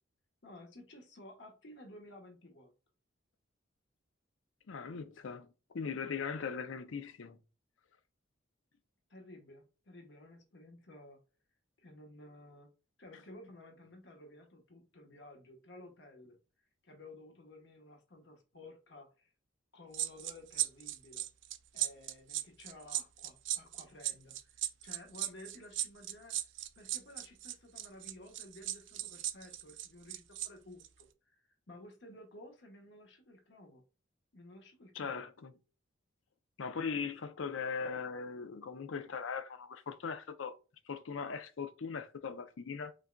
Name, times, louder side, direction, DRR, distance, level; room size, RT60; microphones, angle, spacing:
voice 1, 0.4-2.7 9.1-11.2 11.8-12.7 13.0-16.4 16.8-19.3 19.7-21.3 21.7-26.4 26.7-33.8 34.3-35.2, left 1 dB, 60° left, 1.2 m, -54 dB
voice 2, 4.7-5.5 5.7-7.4 34.9-35.5 36.6-40.6 40.9-42.9, left 5 dB, 80° left, 0.5 m, -39 dB
sound 1, 19.9-30.5 30.8-31.0, right 14 dB, 65° right, 0.4 m, -37 dB
5.2 x 2.5 x 2.2 m
head